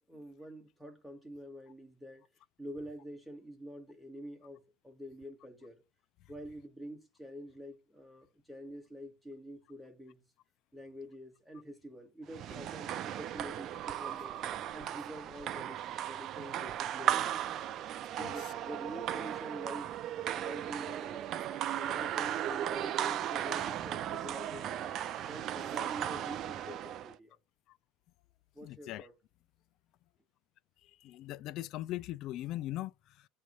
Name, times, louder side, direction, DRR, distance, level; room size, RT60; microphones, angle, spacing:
voice 1, 0.1-2.3 2.6-5.8 6.3-10.2 10.7-14.4 14.7-17.4 18.0-21.2 21.8-27.4 28.5-29.1, equal, ahead, 1.9 m, -47 dB
sound 1, 12.3-27.2, right 11 dB, 40° right, 0.4 m, -36 dB
voice 2, 28.6-29.1 30.8-33.3, left 15 dB, 45° left, 0.3 m, -40 dB
8.2 x 3.2 x 5.4 m
supercardioid pair, 140°, 0 cm